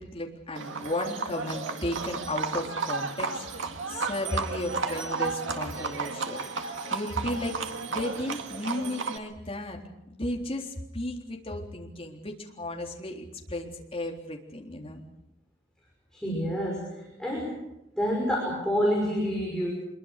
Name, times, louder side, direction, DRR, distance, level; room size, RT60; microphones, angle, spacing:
voice 1, 0.0-9.8 10.1-15.0, left 1 dB, 30° left, 0 dB, 3.7 m, -34 dB
Livestock farm animals working animals, 0.5-9.2, right 4 dB, 85° right, 2.0 m, -33 dB
voice 2, 16.1-17.6 18.0-19.7, equal, 5° left, -3 dB, 5.9 m, -28 dB
26.0 x 22.5 x 6.7 m, 0.86 s
head